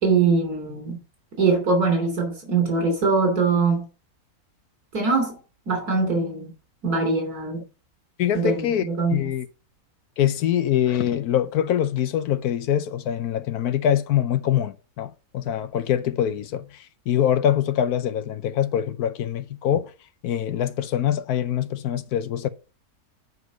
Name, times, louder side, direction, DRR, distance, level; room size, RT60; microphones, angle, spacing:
voice 1, 0.0-1.0 1.4-3.9 4.9-5.4 5.7-6.5 6.8-7.6 8.3-9.3, right 4 dB, 80° right, 3.6 m, -22 dB
voice 2, 8.2-8.9 9.1-9.5 10.2-19.9 20.2-22.5, left 10 dB, 85° left, 1.2 m, -24 dB
9.5 x 4.8 x 6.2 m
omnidirectional pair, 1.6 m